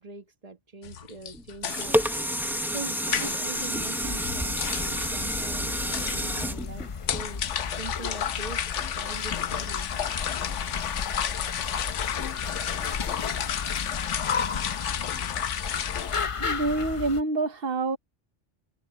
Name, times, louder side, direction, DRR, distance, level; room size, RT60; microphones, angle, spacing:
voice 1, 0.0-2.1 2.7-7.5 7.7-9.9, right 4 dB, 35° right, 1.4 m, -42 dB
sound 1, 0.8-16.3, left 9 dB, 80° left, 1.1 m, -32 dB
sound 2, 1.3-7.7 8.2-8.3, equal, ahead, 0.7 m, -29 dB
sound 3, 4.0-17.2, left 5 dB, 40° left, 0.5 m, -35 dB
voice 2, 16.4-18.0, right 2 dB, 55° right, 1.1 m, -27 dB
omnidirectional pair, 1.2 m